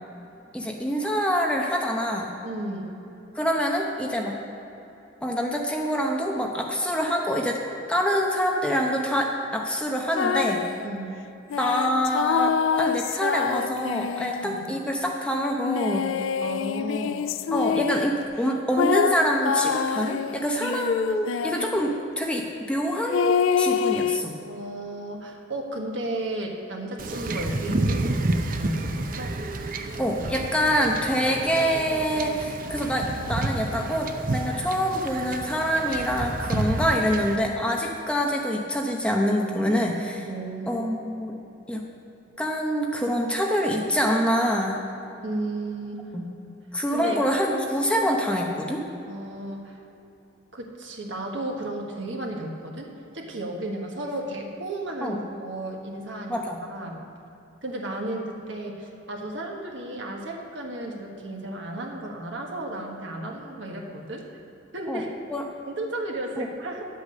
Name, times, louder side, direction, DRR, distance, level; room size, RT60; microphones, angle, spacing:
voice 1, 0.5-2.3 3.4-4.4 5.2-7.6 7.9-10.7 11.6-16.1 17.5-24.3 30.0-40.3 40.7-41.4 41.7-41.8 42.4-44.8 46.1-46.3 46.7-48.8 55.0-55.2 56.3-56.6 64.9-65.0 65.3-65.4 66.4-66.5, equal, 5° left, 0 dB, 0.8 m, -25 dB
voice 2, 2.4-2.9 10.8-11.2 14.4-14.6 16.4-17.3 24.4-29.3 40.3-40.9 45.2-46.0 46.9-47.2 49.1-49.8 50.5-56.3 56.7-57.0 57.6-64.2 64.7-65.1 65.7-66.9, right 1 dB, 60° right, 1 dB, 1.5 m, -33 dB
sound 1, 10.1-10.8 11.5-14.7 15.6-18.1 18.8-21.8 23.1-24.2, left 7 dB, 70° left, 0.3 m, -26 dB
Wind / Ocean / Boat Water vehicle, 27.0-37.4, right 2 dB, 45° right, 0.6 m, -30 dB
10.0 x 8.3 x 6.5 m, 2.9 s
head